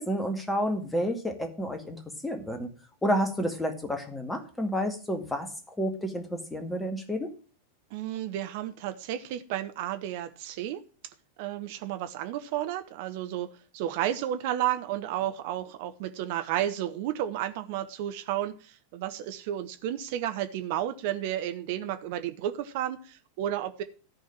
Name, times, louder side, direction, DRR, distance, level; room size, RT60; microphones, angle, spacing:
voice 1, 0.0-2.7 3.0-5.5 5.8-7.3, equal, 10° left, 5 dB, 2.1 m, -30 dB
voice 2, 7.9-10.8 11.4-23.8, right 12 dB, 50° right, 9 dB, 0.8 m, -32 dB
13.5 x 4.6 x 7.4 m, 0.40 s
figure-of-eight pair, 90°, 0 cm